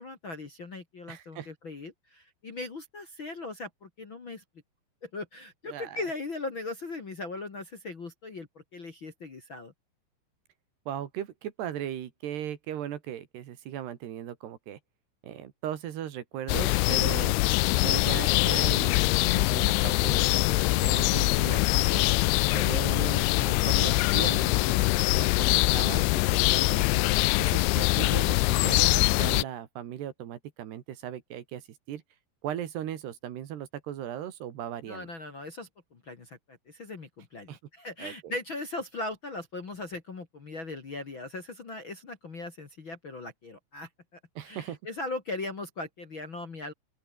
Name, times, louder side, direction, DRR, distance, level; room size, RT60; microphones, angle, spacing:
voice 1, 0.0-4.4 5.0-9.7 34.9-44.2 44.4-46.7, left 2 dB, 35° left, 2.2 m, -39 dB
voice 2, 1.1-1.5 5.7-6.0 10.9-14.8 15.2-17.4 17.8-22.0 22.5-27.0 27.4-32.0 32.4-35.1 37.5-37.6 38.0-38.3 44.4-44.8, right 10 dB, 65° right, 3.8 m, -38 dB
sound 1, 16.5-29.4, left 23 dB, 90° left, 3.0 m, -23 dB
open air
omnidirectional pair, 5.2 m